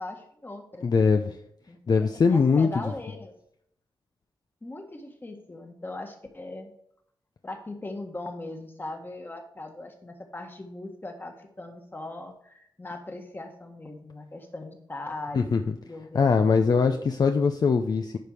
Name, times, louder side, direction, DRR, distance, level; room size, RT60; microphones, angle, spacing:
voice 1, 0.0-0.9 1.7-3.3 4.6-6.7 7.4-17.0, left 2 dB, 25° left, 4 dB, 1.6 m, -40 dB
voice 2, 0.8-1.4 1.9-2.7 15.3-15.6 16.1-18.2, left 5 dB, 50° left, 6 dB, 0.6 m, -21 dB
10.0 x 5.2 x 4.9 m, 0.71 s
cardioid pair, 90°, 9 cm